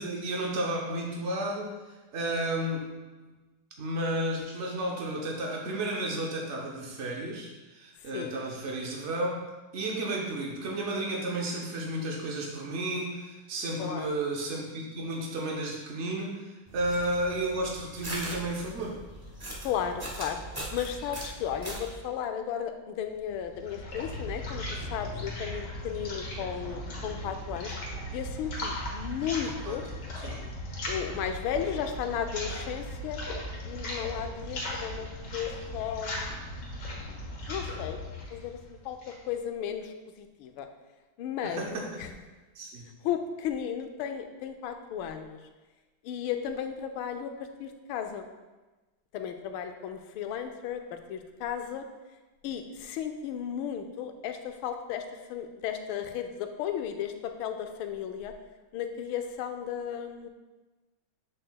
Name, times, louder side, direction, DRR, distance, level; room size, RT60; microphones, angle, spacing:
voice 1, 0.0-2.9 3.2-3.3 3.8-9.4 9.7-19.0 29.6-29.8 30.2-30.4 41.4-42.0 42.5-42.9, right 1 dB, 65° right, -1 dB, 0.7 m, -32 dB
voice 2, 13.8-14.1 19.6-20.4 20.7-27.7 28.1-29.8 30.9-33.2 33.6-36.3 37.5-38.0 38.3-38.6 38.8-40.7 41.2-41.6 42.0-42.1 43.0-45.4 46.0-48.2 49.1-51.8 52.4-55.0 55.3-58.3 58.7-60.3, left 8 dB, 80° left, 6 dB, 1.4 m, -34 dB
sound 1, 16.7-22.0, right 1 dB, 25° right, 0.4 m, -40 dB
sound 2, 23.3-39.3, left 1 dB, 60° left, 1.8 m, -37 dB
7.6 x 6.6 x 2.3 m, 1.2 s
omnidirectional pair, 2.3 m